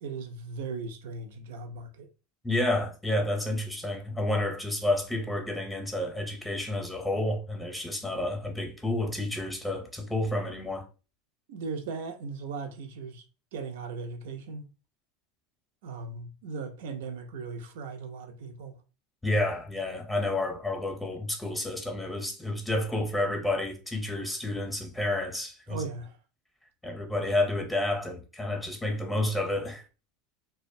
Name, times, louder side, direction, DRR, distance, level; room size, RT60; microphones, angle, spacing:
voice 1, 0.0-2.1 11.5-13.2 13.5-14.7 15.8-18.8 25.7-26.2, right 4 dB, 75° right, 0.5 m, -38 dB
voice 2, 2.4-10.8 19.2-25.8 26.8-29.8, left 1 dB, 10° left, 0.7 m, -30 dB
2.4 x 2.1 x 2.5 m
hypercardioid pair, 100°, 0 cm